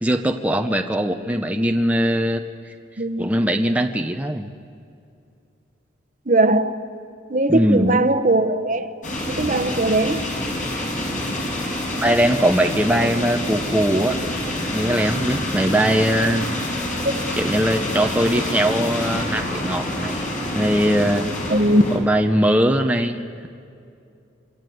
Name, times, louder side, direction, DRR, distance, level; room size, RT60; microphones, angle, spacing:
voice 1, 0.0-2.4 2.7-2.8 3.2-4.5 7.5-8.0 12.0-14.2 14.7-16.5 17.4-20.2 20.5-21.3 21.9-23.5, equal, 10° right, 0.8 m, -20 dB
voice 2, 3.0-3.3 6.3-6.8 7.3-9.0 9.3-10.2 21.5-21.8, right 2 dB, 45° right, 1.1 m, -19 dB
sound 1, 9.0-22.0, left 1 dB, 45° left, 5.7 m, -27 dB
26.0 x 25.5 x 7.9 m
head